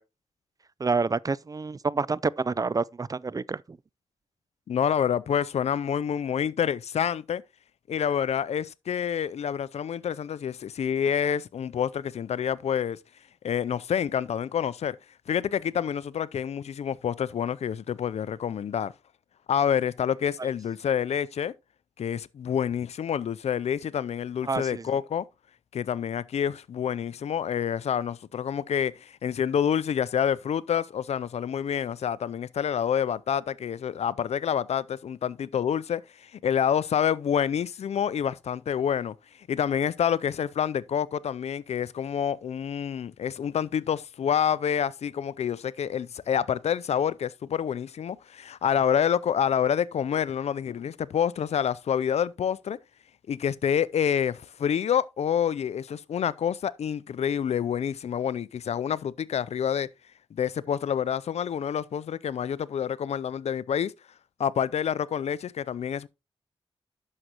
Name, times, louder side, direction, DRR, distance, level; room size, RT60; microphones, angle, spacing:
voice 1, 0.8-3.6 24.5-24.8, right 4 dB, 35° right, 0.4 m, -28 dB
voice 2, 4.7-7.4 7.9-13.0 13.4-15.0 15.3-18.9 19.5-21.5 22.0-25.2 25.7-39.1 39.5-52.8 53.3-59.9 60.3-63.9 64.4-66.1, left 8 dB, 85° left, 0.4 m, -27 dB
11.0 x 6.5 x 2.9 m
cardioid pair, 55°, 11 cm